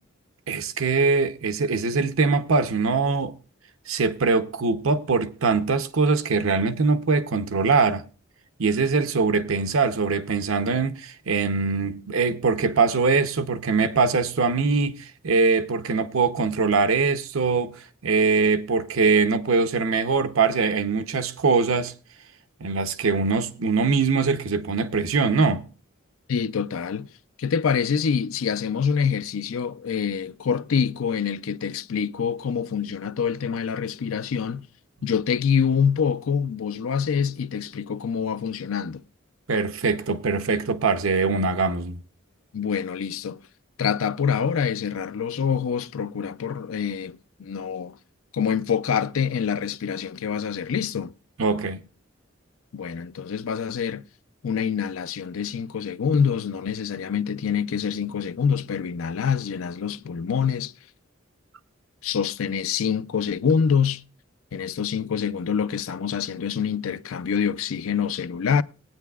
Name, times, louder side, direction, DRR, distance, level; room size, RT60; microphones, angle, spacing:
voice 1, 0.5-3.4 3.9-8.0 8.6-17.8 18.0-21.9 22.6-25.6 39.5-42.0 51.4-51.8, right 4 dB, 90° right, 0.8 m, -22 dB
voice 2, 26.3-27.1 27.4-34.7 35.0-39.0 42.5-43.4 43.8-47.9 48.3-51.1 52.7-54.0 54.4-60.7 62.0-64.0 64.5-68.6, left 7 dB, 90° left, 0.5 m, -26 dB
20.5 x 9.1 x 2.3 m
head